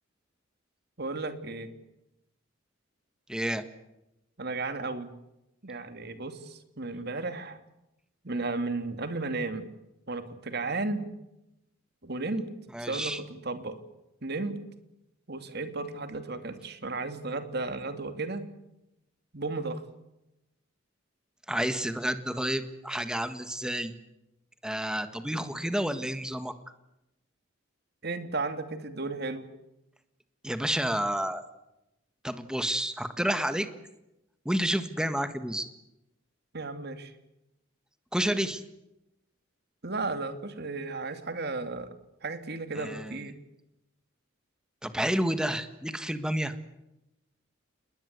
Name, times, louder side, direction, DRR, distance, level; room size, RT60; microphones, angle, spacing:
voice 1, 1.0-1.7 4.4-5.1 5.6-7.6 8.2-9.7 10.1-11.1 12.0-12.5 12.8-13.8 14.2-14.6 15.3-18.4 19.3-19.8 28.0-29.5 36.5-37.1 39.8-41.9 42.2-43.3, right 3 dB, 50° right, 9 dB, 2.6 m, -34 dB
voice 2, 3.3-3.6 12.7-13.2 21.5-23.9 24.6-26.5 30.4-31.4 32.2-33.7 34.4-35.7 38.1-38.6 42.7-43.2 44.8-46.5, right 1 dB, 5° right, 10 dB, 1.5 m, -30 dB
28.0 x 21.0 x 8.2 m, 0.90 s
head